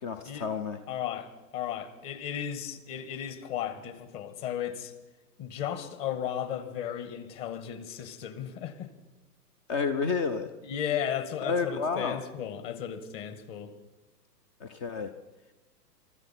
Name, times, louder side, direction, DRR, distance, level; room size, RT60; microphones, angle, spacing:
voice 1, 0.0-0.8 9.7-10.5 11.4-12.2 14.6-15.1, left 5 dB, 20° left, 9 dB, 0.4 m, -30 dB
voice 2, 0.9-4.9 5.4-8.9 10.6-13.7, left 9 dB, 35° left, 11 dB, 1.8 m, -35 dB
24.5 x 13.5 x 4.3 m, 1.1 s
hypercardioid pair, 115°, 49 cm